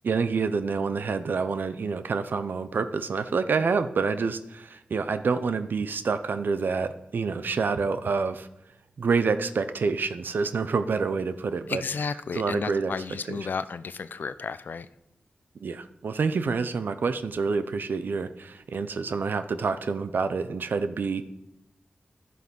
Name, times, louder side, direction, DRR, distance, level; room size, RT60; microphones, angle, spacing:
voice 1, 0.0-8.5 9.0-11.8 12.3-12.9 13.3-13.5 15.6-21.3, right 4 dB, 75° right, 11 dB, 0.7 m, -27 dB
voice 2, 11.7-14.9, left 5 dB, 70° left, 14 dB, 0.5 m, -32 dB
11.0 x 7.7 x 5.4 m, 0.83 s
cardioid pair, 60°, 3 cm